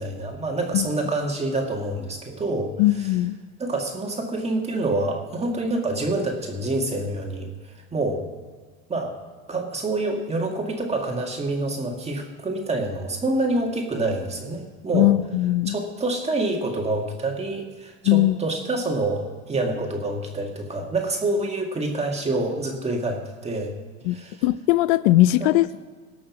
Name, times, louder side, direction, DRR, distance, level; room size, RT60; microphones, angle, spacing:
voice 1, 0.0-2.7 3.0-3.1 3.6-8.2 8.9-9.1 9.5-15.1 15.7-23.7 24.1-24.4 25.4-25.5, right 2 dB, 20° right, 1 dB, 2.0 m, -27 dB
voice 2, 2.8-3.4 14.9-15.7 18.0-18.4 24.0-24.2 24.4-25.8, left 16 dB, 80° left, 17 dB, 0.5 m, -19 dB
18.5 x 6.4 x 6.0 m, 1.4 s
supercardioid pair, 125°, 34 cm